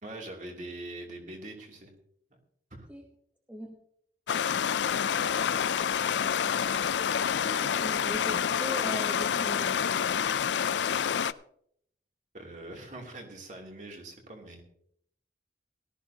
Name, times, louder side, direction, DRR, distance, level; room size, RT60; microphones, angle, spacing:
voice 1, 0.0-1.9 2.3-2.4 2.7-2.9 12.3-14.6, right 1 dB, 40° right, 1 dB, 2.9 m, -43 dB
Stream, 4.3-11.3, left 8 dB, 75° left, 0.4 m, -28 dB
voice 2, 7.4-9.8, left 1 dB, 10° right, 2 dB, 1.0 m, -39 dB
18.0 x 13.5 x 2.8 m, 0.68 s
head